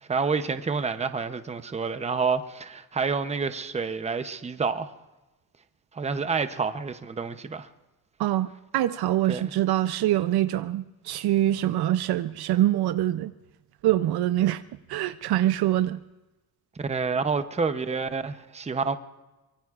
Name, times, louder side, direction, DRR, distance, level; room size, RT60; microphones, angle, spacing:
voice 1, 0.1-4.9 5.9-7.7 9.3-9.5 16.8-19.0, right 5 dB, 20° right, 0.7 m, -28 dB
voice 2, 8.2-13.3 13.8-14.6 14.9-16.0, right 13 dB, 90° right, 0.6 m, -24 dB
24.5 x 23.5 x 2.4 m
wide cardioid pair, 155°, 37 cm